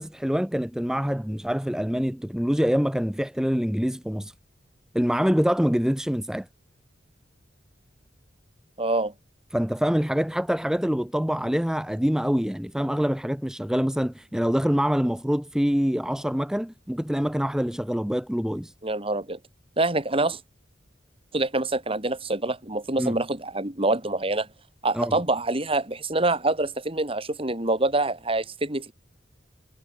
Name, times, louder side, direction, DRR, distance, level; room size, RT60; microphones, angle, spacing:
voice 1, 0.0-4.3 4.9-6.5 9.5-18.7 23.0-23.2 24.9-25.2, equal, 5° right, 0.6 m, -25 dB
voice 2, 8.8-9.1 18.8-19.4 19.8-20.4 21.3-24.5 24.8-28.9, right 2 dB, 30° right, 3.5 m, -26 dB
head